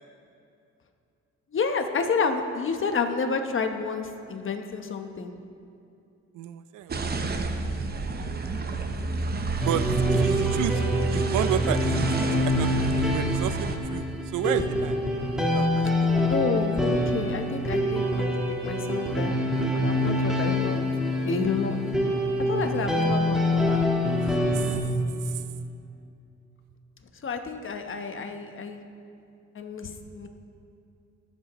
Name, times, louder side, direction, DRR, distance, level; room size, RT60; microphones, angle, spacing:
voice 1, 1.5-5.3 16.3-19.4 19.7-20.8 21.3-21.8 22.5-23.8 27.2-28.9 29.5-30.3, left 5 dB, 45° left, 6 dB, 1.1 m, -30 dB
voice 2, 6.3-7.4 9.6-10.8 11.1-14.1 14.3-15.0 15.5-16.1 24.5-24.7 25.2-25.4, right 11 dB, 85° right, 12 dB, 0.6 m, -32 dB
sound 1, 6.9-13.8, right 3 dB, 30° right, 0.9 m, -30 dB
sound 2, 9.6-24.8, left 1 dB, ahead, 1.5 m, -25 dB
19.5 x 7.7 x 3.1 m, 2.5 s
cardioid pair, 90°, 30 cm